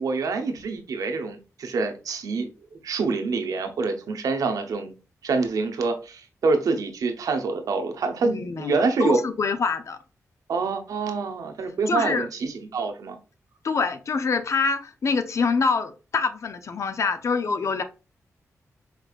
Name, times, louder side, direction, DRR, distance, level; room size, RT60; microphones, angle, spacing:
voice 1, 0.0-4.9 5.2-9.2 10.5-13.2, right 4 dB, 80° right, 0.8 m, -26 dB
voice 2, 8.2-10.0 11.9-12.3 13.6-17.8, left 4 dB, 55° left, 0.6 m, -25 dB
4.9 x 3.3 x 2.4 m
cardioid pair, 85°, 6 cm